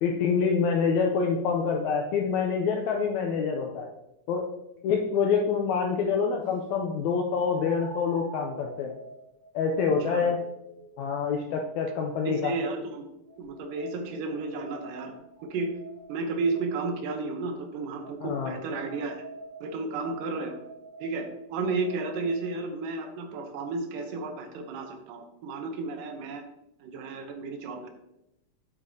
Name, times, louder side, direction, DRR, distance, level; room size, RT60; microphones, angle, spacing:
voice 1, 0.0-3.9 4.3-4.4 4.8-8.9 9.5-10.4 11.0-12.5 18.2-18.5, left 5 dB, 75° left, 2 dB, 1.8 m, -26 dB
sound 1, 4.8-4.9 7.4-12.5 13.3-17.0 18.0-22.6, right 3 dB, 45° right, 1.5 m, -46 dB
voice 2, 12.3-13.0 13.4-15.1 15.4-15.7 16.1-19.2 19.6-20.6 21.0-26.4 26.8-27.9, right 3 dB, 85° right, 5 dB, 2.6 m, -32 dB
8.2 x 7.9 x 2.8 m, 0.88 s
omnidirectional pair, 3.7 m